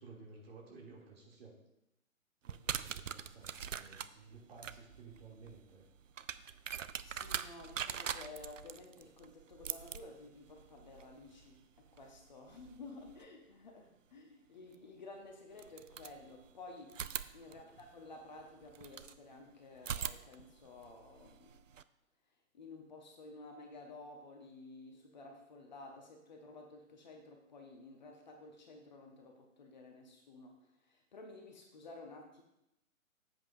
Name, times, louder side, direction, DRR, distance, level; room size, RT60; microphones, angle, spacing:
voice 1, 0.0-1.5 2.4-5.8 17.4-17.7, right 4 dB, 45° right, -3 dB, 2.8 m, -55 dB
sound 1, 2.4-13.2 14.7-14.8 15.5-16.5 16.9-19.2 19.8-21.8, right 8 dB, 65° right, 0.5 m, -44 dB
voice 2, 7.0-17.0 17.3-21.6 22.5-32.4, left 3 dB, 30° left, 2 dB, 1.0 m, -53 dB
13.0 x 7.9 x 2.7 m, 0.86 s
figure-of-eight pair, 135°, 43 cm